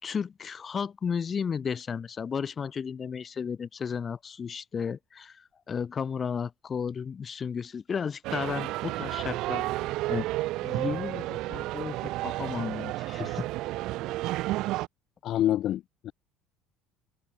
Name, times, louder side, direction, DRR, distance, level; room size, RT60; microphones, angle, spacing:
voice 1, 0.0-10.2 10.6-13.5, left 6 dB, 35° left, 5.0 m, -34 dB
sound 1, 8.2-14.9, right 18 dB, 70° right, 0.7 m, -31 dB
voice 2, 15.2-16.1, left 12 dB, 55° left, 1.3 m, -27 dB
supercardioid pair, 90°, 0 cm